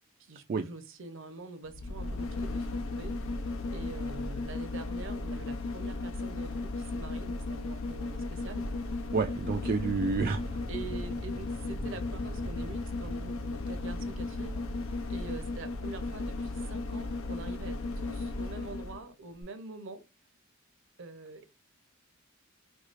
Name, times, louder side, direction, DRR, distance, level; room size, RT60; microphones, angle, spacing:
voice 1, 0.2-3.1 3.7-8.6 10.7-14.6 15.1-20.0 21.0-21.5, right 3 dB, 65° right, 0.7 m, -45 dB
sound 1, 1.6-19.0 19.4-19.5, left 2 dB, 80° left, 0.5 m, -35 dB
voice 2, 9.1-10.5, right 4 dB, 45° right, 0.3 m, -29 dB
sound 2, 9.8-15.6, left 1 dB, 20° left, 0.4 m, -46 dB
4.7 x 2.3 x 2.5 m
head